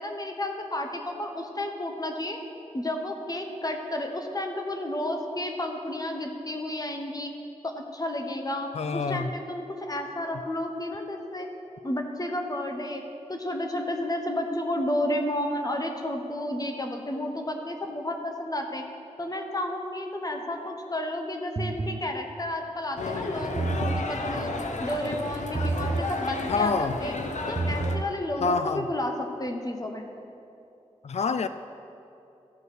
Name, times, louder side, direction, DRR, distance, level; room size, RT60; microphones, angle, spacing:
voice 1, 0.0-2.4 2.7-7.3 7.6-11.5 11.8-13.0 13.3-18.8 19.2-24.5 24.8-27.1 27.5-30.1, left 1 dB, 30° left, 3 dB, 1.1 m, -32 dB
voice 2, 8.7-9.3 26.5-27.0 28.4-28.9 31.0-31.5, left 4 dB, 60° left, 11 dB, 0.4 m, -26 dB
sound 1, 21.6-22.0 23.4-24.1 25.5-26.1 27.4-28.1, right 3 dB, 35° right, 0.4 m, -29 dB
sound 2, 23.0-28.0, left 3 dB, 75° left, 0.8 m, -32 dB
14.0 x 5.5 x 6.0 m, 2.8 s
wide cardioid pair, 90°, 12 cm